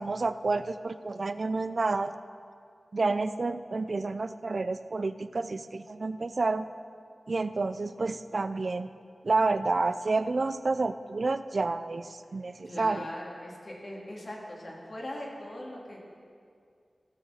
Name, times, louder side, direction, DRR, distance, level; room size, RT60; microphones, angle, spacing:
voice 1, 0.0-2.1 2.9-6.6 7.3-8.9 9.2-13.1, right 3 dB, 60° right, 12 dB, 0.4 m, -29 dB
voice 2, 12.6-16.0, left 1 dB, 55° left, -3 dB, 2.7 m, -40 dB
16.0 x 6.6 x 6.5 m, 2.3 s
wide cardioid pair, 65°, 0 cm